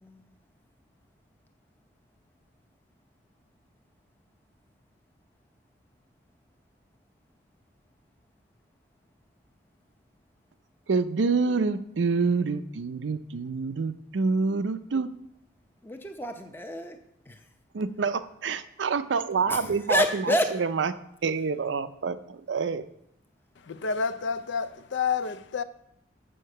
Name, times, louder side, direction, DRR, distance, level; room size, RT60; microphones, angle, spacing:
voice 1, 10.9-15.1 17.7-20.9 21.2-22.8, right 4 dB, 75° right, 0.5 m, -27 dB
voice 2, 15.8-17.0 17.3-17.4 19.5-20.6, left 2 dB, 10° left, 0.7 m, -29 dB
voice 3, 23.6-25.6, left 5 dB, 75° left, 0.5 m, -29 dB
7.7 x 6.5 x 6.5 m
head